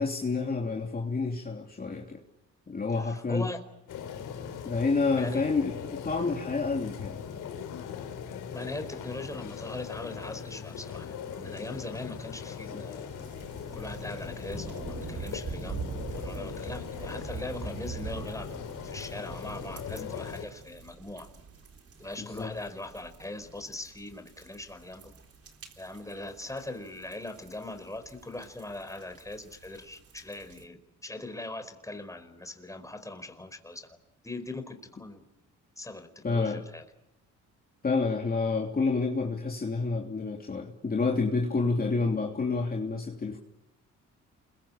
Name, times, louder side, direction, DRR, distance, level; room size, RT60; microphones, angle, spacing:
voice 1, 0.0-2.2 2.7-3.5 4.6-7.2 12.7-12.8 22.2-22.5 36.2-36.6 37.8-43.4, left 4 dB, 30° left, 1 dB, 3.1 m, -29 dB
voice 2, 2.9-3.6 5.1-5.4 8.5-13.1 13.7-18.5 18.8-21.3 22.0-25.1 25.8-34.0 34.2-35.2 35.8-36.8, left 2 dB, 10° left, 7 dB, 4.7 m, -40 dB
sound 1, 3.9-20.5, left 7 dB, 80° left, 4.1 m, -40 dB
sound 2, 13.1-30.6, right 5 dB, 50° right, 3.8 m, -44 dB
28.5 x 23.0 x 8.7 m, 0.87 s
cardioid pair, 90°, 30 cm